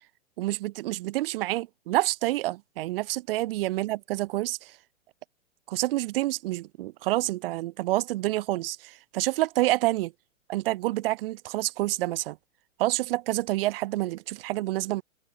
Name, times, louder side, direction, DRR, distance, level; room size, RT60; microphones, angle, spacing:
voice 1, 0.4-4.7 5.7-10.1 10.5-12.4 12.8-15.0, right 17 dB, 45° right, 0.7 m, -28 dB
open air
hypercardioid pair, 125°, 38 cm